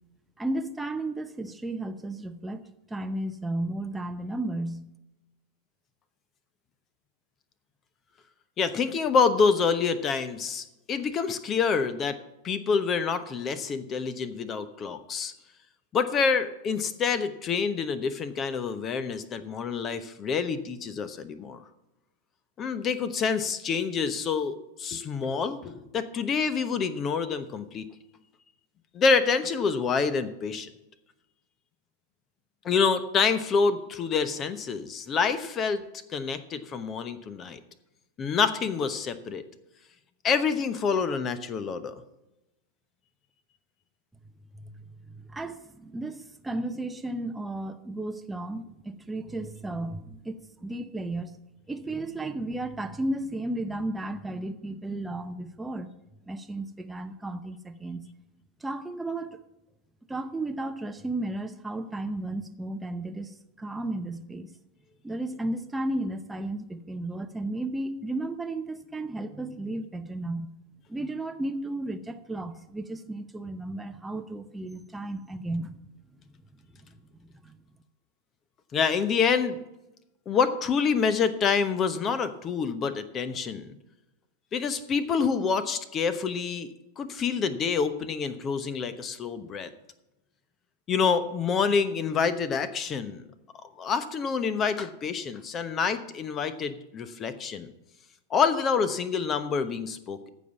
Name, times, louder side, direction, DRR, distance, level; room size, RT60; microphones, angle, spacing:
voice 1, 0.4-4.9 44.5-44.7 45.1-51.4 51.7-55.9 56.2-58.1 58.6-59.4 60.1-64.5 65.0-70.5 70.9-75.8 77.4-77.6, right 2 dB, 5° right, 7 dB, 0.8 m, -34 dB
voice 2, 8.6-12.2 12.4-15.3 15.9-21.6 22.6-27.9 28.9-30.7 32.6-35.8 36.1-37.6 38.2-39.4 40.2-42.0 78.7-79.6 80.3-83.8 84.5-86.7 87.0-89.7 90.9-93.3 93.8-97.7 98.3-100.3, left 5 dB, 25° left, 13 dB, 1.0 m, -27 dB
14.5 x 5.5 x 7.1 m, 0.94 s
figure-of-eight pair, 90°, 0 cm